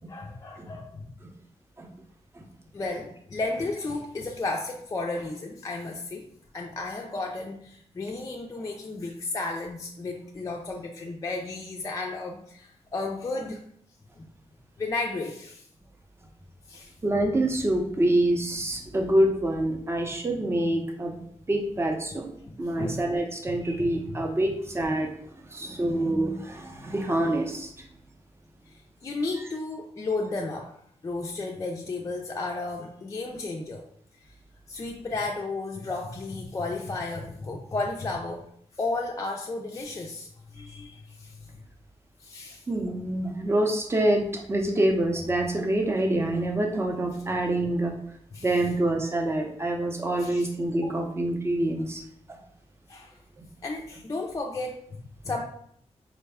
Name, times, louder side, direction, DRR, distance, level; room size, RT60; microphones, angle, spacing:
voice 1, 0.1-1.1 2.7-6.3 6.5-13.6 14.2-14.3 14.8-15.7 16.7-16.9 22.4-23.0 23.8-24.2 29.0-30.8 31.0-33.8 34.7-38.4 38.8-41.4 42.2-42.7 48.3-48.5 50.2-50.5 50.7-51.1 52.9-53.2 53.6-55.4, left 3 dB, 30° left, 0 dB, 0.4 m, -33 dB
voice 2, 17.0-22.3 22.6-25.1 25.5-27.9 42.7-47.9 48.4-52.0 52.3-52.4 53.4-53.5, right 1 dB, 20° right, 3 dB, 0.6 m, -26 dB
4.8 x 2.1 x 3.4 m, 0.68 s
wide cardioid pair, 125°, 12 cm